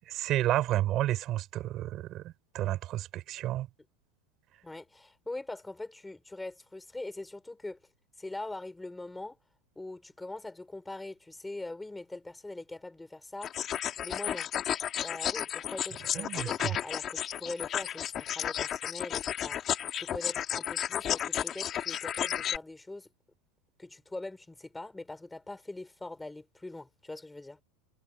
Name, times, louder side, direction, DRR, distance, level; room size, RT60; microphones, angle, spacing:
voice 1, 0.0-3.7 4.5-4.6 16.1-16.8, right 14 dB, 40° right, 6.6 m, -31 dB
voice 2, 4.6-7.8 8.2-9.4 9.7-13.7 14.0-14.5 15.0-23.1 23.8-27.6, left 2 dB, 5° left, 4.6 m, -42 dB
sound 1, 13.4-22.6, left 10 dB, 35° left, 2.5 m, -33 dB
supercardioid pair, 135°, 0 cm